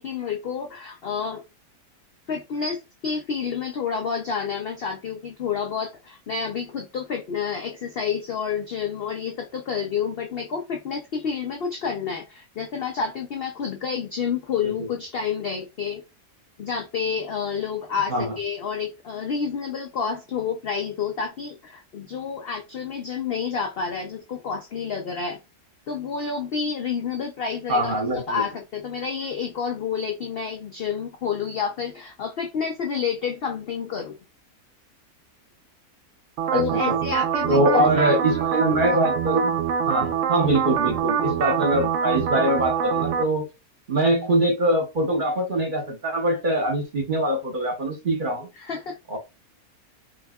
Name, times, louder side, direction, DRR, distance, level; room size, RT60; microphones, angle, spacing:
voice 1, 0.0-1.4 2.3-16.0 16.6-25.4 25.9-34.2 36.5-38.2 48.6-49.0, left 6 dB, 70° left, 0.5 m, -29 dB
voice 2, 27.7-28.5 36.5-37.0 37.5-39.6 39.8-43.5 43.9-48.5 49.1-49.2, right 1 dB, 40° right, 0.9 m, -23 dB
sound 1, 36.4-43.2, right 7 dB, 70° right, 0.8 m, -25 dB
4.8 x 2.3 x 2.2 m
omnidirectional pair, 1.6 m